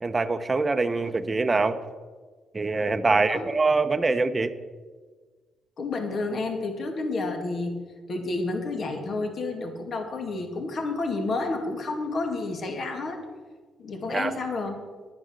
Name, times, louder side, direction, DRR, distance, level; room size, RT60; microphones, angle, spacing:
voice 1, 0.0-1.8 2.5-4.5 14.1-14.3, right 3 dB, 25° right, 9 dB, 0.8 m, -24 dB
voice 2, 5.8-7.8 8.1-13.2 13.8-14.8, left 3 dB, 55° left, 4 dB, 2.3 m, -30 dB
11.5 x 9.5 x 6.5 m, 1.4 s
cardioid pair, 90°, 0 cm